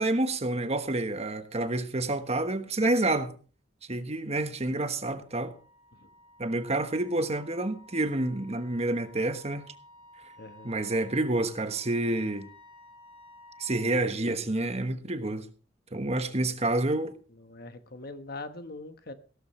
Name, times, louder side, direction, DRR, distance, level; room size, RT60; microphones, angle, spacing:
voice 1, 0.0-3.3 3.9-5.5 6.4-9.6 10.6-12.5 13.6-15.5 15.9-17.1, right 2 dB, 35° right, 1.2 m, -28 dB
Wind instrument woodwind instrument, 4.6-14.0, left 1 dB, 35° left, 5.5 m, -54 dB
voice 2, 10.4-10.8 16.3-16.5 17.3-19.1, left 2 dB, 55° left, 1.3 m, -43 dB
16.5 x 13.5 x 3.2 m
head